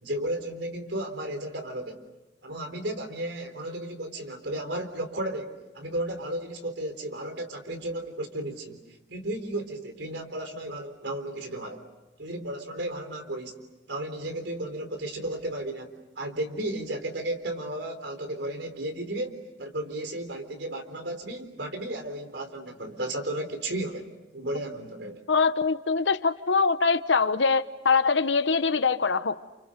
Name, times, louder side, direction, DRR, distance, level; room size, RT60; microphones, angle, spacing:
voice 1, 0.0-2.0 2.4-8.8 9.1-11.8 12.2-13.5 13.9-15.9 16.2-25.2, right 1 dB, 75° right, 3.8 m, -34 dB
voice 2, 25.3-29.4, left 4 dB, 85° left, 1.1 m, -23 dB
30.0 x 29.5 x 6.6 m
head